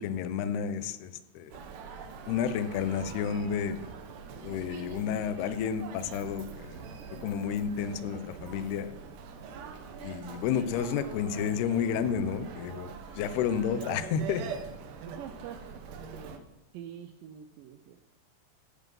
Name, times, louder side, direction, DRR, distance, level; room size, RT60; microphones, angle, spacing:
voice 1, 0.0-1.5 2.3-3.9 4.4-6.8 7.2-9.0 10.0-12.9 13.2-14.4, left 7 dB, 75° left, 11 dB, 2.8 m, -31 dB
Human voice, 1.5-16.4, right 5 dB, 65° right, 2.2 m, -43 dB
voice 2, 15.2-15.8 16.1-16.4 16.7-18.0, right 9 dB, 90° right, 7 dB, 1.9 m, -45 dB
17.0 x 11.0 x 5.5 m, 0.95 s
omnidirectional pair, 4.9 m